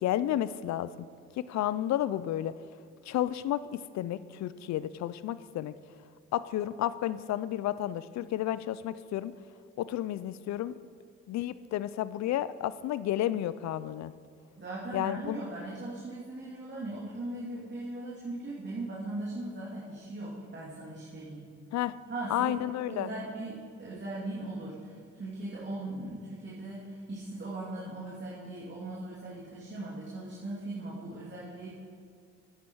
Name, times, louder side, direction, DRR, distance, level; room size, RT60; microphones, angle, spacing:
voice 1, 0.0-1.1 1.4-2.5 3.1-5.7 6.3-9.3 9.8-10.7 11.3-14.1 14.9-15.4 21.7-21.9 22.3-23.1, left 12 dB, 60° left, 16 dB, 0.5 m, -31 dB
voice 2, 14.6-21.5 22.1-22.5 22.9-31.7, right 2 dB, 35° right, -7 dB, 2.5 m, -39 dB
10.5 x 9.3 x 4.6 m, 2.2 s
supercardioid pair, 60°, 31 cm